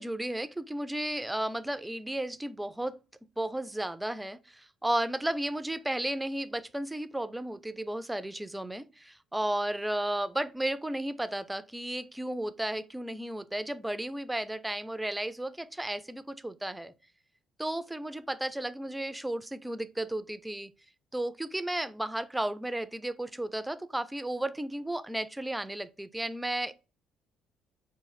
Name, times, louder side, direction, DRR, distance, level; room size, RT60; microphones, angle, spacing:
voice 1, 0.0-3.0 3.4-16.9 17.6-20.7 21.1-26.7, right 1 dB, 10° right, 0.4 m, -33 dB
3.7 x 2.6 x 4.7 m
figure-of-eight pair, 45°, 0 cm